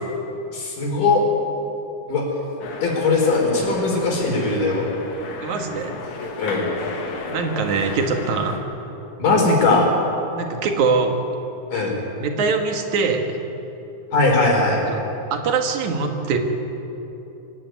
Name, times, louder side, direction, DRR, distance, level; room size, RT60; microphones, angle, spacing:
voice 1, 0.5-1.2 2.1-2.2 2.8-4.9 6.4-6.7 9.2-9.9 11.7-12.0 14.1-14.8, left 3 dB, 80° left, 0 dB, 5.9 m, -19 dB
sound 1, 2.6-8.6, left 3 dB, 65° left, 3.3 m, -33 dB
voice 2, 5.4-6.0 7.3-8.6 10.4-11.2 12.2-13.4 14.9-15.0 15.3-16.4, right 4 dB, 65° right, 4 dB, 3.1 m, -23 dB
24.0 x 16.0 x 9.4 m, 3.0 s
omnidirectional pair, 3.7 m